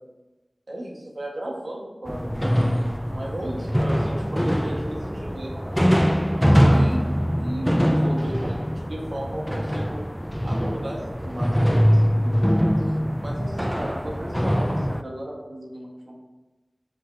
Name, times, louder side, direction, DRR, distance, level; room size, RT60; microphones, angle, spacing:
voice 1, 0.7-2.5 2.8-2.9 3.1-5.8 6.4-10.0 10.4-12.5 12.8-12.9 13.2-16.2, right 1 dB, 65° right, -2 dB, 1.4 m, -35 dB
sound 1, 2.1-15.0, equal, ahead, 0.3 m, -22 dB
7.6 x 5.2 x 2.7 m, 1.1 s
wide cardioid pair, 50°, 0 cm